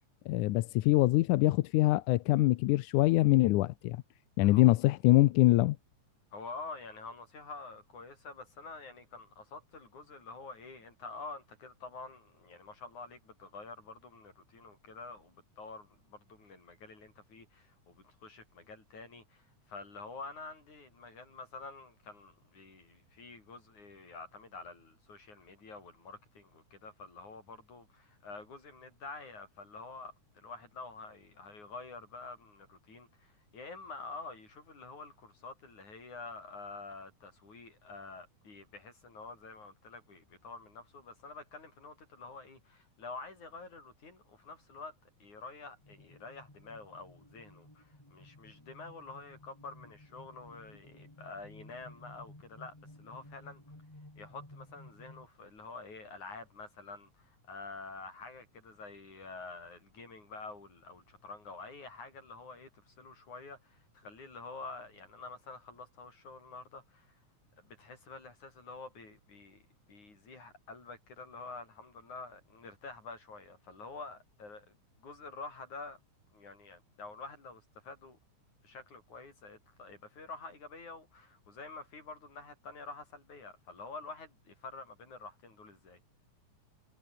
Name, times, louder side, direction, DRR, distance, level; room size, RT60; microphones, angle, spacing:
voice 1, 0.3-4.0 4.4-5.8, left 17 dB, 90° left, 2.2 m, -24 dB
voice 2, 4.4-4.7 6.3-53.6 54.2-67.2 67.6-69.6 69.9-74.7 75.0-76.0 76.3-78.2 78.6-86.0, left 3 dB, 70° left, 8.8 m, -48 dB
sound 1, 45.8-55.3, left 1 dB, 10° left, 2.4 m, -55 dB
omnidirectional pair, 3.6 m